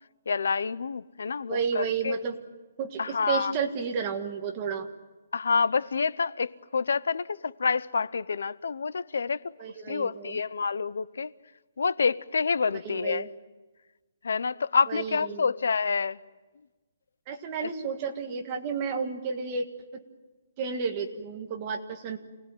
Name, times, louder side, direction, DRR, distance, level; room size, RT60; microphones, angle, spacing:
voice 1, 0.3-2.2 3.0-3.5 5.3-9.4 9.9-11.3 11.8-13.2 14.2-16.2 17.6-17.7, left 5 dB, 75° left, 0.7 m, -28 dB
voice 2, 1.5-2.4 2.8-4.9 9.6-10.4 12.8-13.3 14.9-15.4 17.3-20.0 20.6-22.2, right 6 dB, 20° right, 1.7 m, -32 dB
28.5 x 19.0 x 9.2 m
hypercardioid pair, 180°, 0 cm